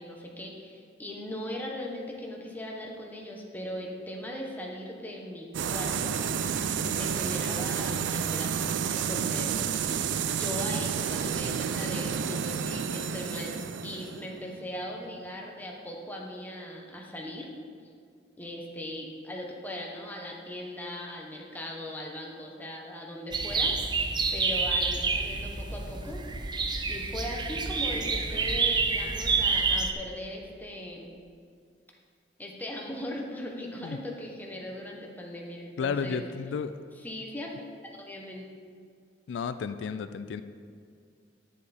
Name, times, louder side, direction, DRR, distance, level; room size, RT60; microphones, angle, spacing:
voice 1, 0.0-6.2 6.8-8.5 8.9-9.5 10.2-17.5 18.4-23.7 24.3-26.2 26.9-31.1 32.4-36.2 37.0-37.7 37.9-38.7, left 1 dB, 10° left, -1 dB, 1.0 m, -39 dB
sound 1, 5.5-15.2, right 7 dB, 80° right, 0.4 m, -30 dB
sound 2, 23.3-29.9, right 4 dB, 25° right, 0.5 m, -28 dB
voice 2, 35.8-36.8 39.3-40.4, left 5 dB, 80° left, 12 dB, 0.3 m, -32 dB
10.0 x 6.7 x 4.2 m, 2.2 s
head